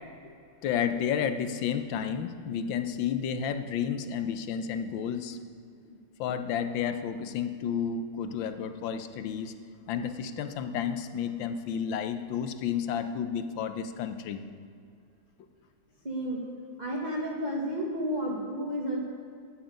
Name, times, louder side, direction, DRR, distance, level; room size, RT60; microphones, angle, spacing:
voice 1, 0.6-5.4 6.2-9.5 9.9-14.4, left 8 dB, 80° left, 9 dB, 1.5 m, -31 dB
voice 2, 16.0-16.4 16.8-19.0, equal, 25° right, -5 dB, 1.3 m, -31 dB
11.5 x 8.8 x 5.2 m, 2.3 s
omnidirectional pair, 2.1 m